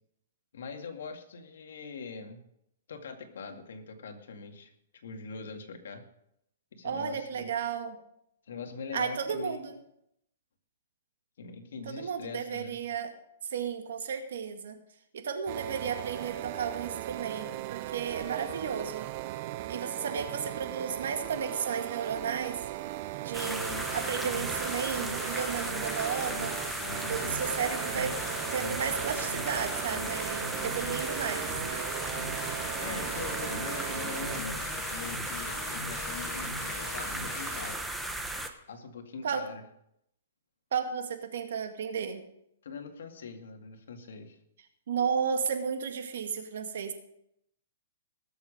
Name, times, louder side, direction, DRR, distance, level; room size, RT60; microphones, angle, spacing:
voice 1, 0.5-2.4 2.9-4.7 5.0-6.0 6.7-7.5 8.5-9.6 11.4-12.8 32.8-37.8 38.7-39.6 42.6-44.4, left 5 dB, 75° left, 4 dB, 2.2 m, -42 dB
voice 2, 6.8-8.0 8.9-9.8 11.9-13.1 13.5-14.8 15.1-19.1 19.7-22.6 23.2-26.6 27.1-28.1 28.5-31.5 39.2-39.4 40.7-42.2 44.9-46.9, right 7 dB, 70° right, 6 dB, 2.0 m, -33 dB
sound 1, 15.5-34.4, right 15 dB, 40° right, 0.5 m, -38 dB
sound 2, 23.3-38.5, right 1 dB, 5° right, 0.9 m, -36 dB
sound 3, 23.4-37.7, left 5 dB, 55° left, 1.8 m, -41 dB
19.5 x 7.2 x 5.2 m, 0.77 s
hypercardioid pair, 160°, 0 cm